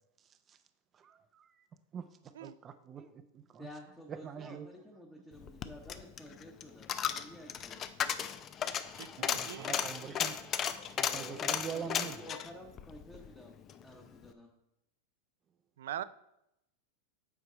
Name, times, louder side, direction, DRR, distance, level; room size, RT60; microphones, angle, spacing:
voice 1, 0.9-1.5 1.9-3.7 4.1-4.7 9.0-10.4 11.0-12.2, right 7 dB, 30° right, 10 dB, 0.5 m, -44 dB
voice 2, 3.6-7.8 11.1-14.5, equal, 10° left, -1 dB, 1.1 m, -51 dB
Coin (dropping), 5.4-13.8 14.2-14.3, left 8 dB, 30° left, 0.5 m, -35 dB
voice 3, 8.9-9.8 15.8-16.0, right 11 dB, 80° right, 16 dB, 0.4 m, -42 dB
8.1 x 4.6 x 5.0 m, 0.84 s
hypercardioid pair, 125°, 0 cm